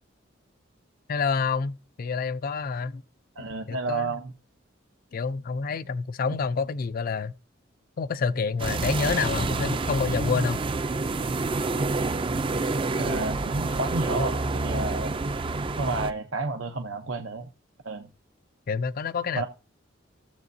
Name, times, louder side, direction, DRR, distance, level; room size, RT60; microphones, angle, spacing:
voice 1, 1.1-3.0 3.4-4.2 5.1-7.3 8.0-10.6 18.7-19.4, left 5 dB, 50° left, 0.4 m, -28 dB
voice 2, 3.4-4.3 13.0-15.1 15.7-17.5 17.8-18.1 19.4-19.5, right 3 dB, 90° right, 0.8 m, -31 dB
sound 1, 8.6-16.1, right 3 dB, 25° right, 0.4 m, -28 dB
15.0 x 7.4 x 2.7 m
head